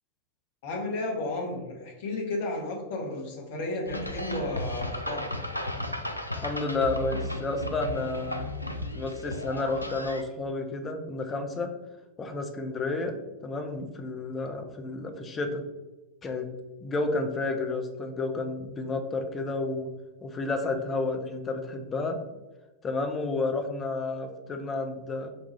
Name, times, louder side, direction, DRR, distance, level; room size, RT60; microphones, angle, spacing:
voice 1, 0.6-5.3, left 2 dB, 50° left, 1 dB, 0.9 m, -33 dB
sound 1, 3.9-10.2, left 1 dB, 85° left, 0.3 m, -34 dB
voice 2, 6.3-8.5 8.9-11.7 12.2-13.2 13.4-15.6 16.2-16.5 16.8-19.9 20.2-22.2 22.8-25.3, left 3 dB, 20° left, 5 dB, 0.5 m, -31 dB
5.3 x 2.3 x 2.9 m, 1.1 s
figure-of-eight pair, 90°, 0 cm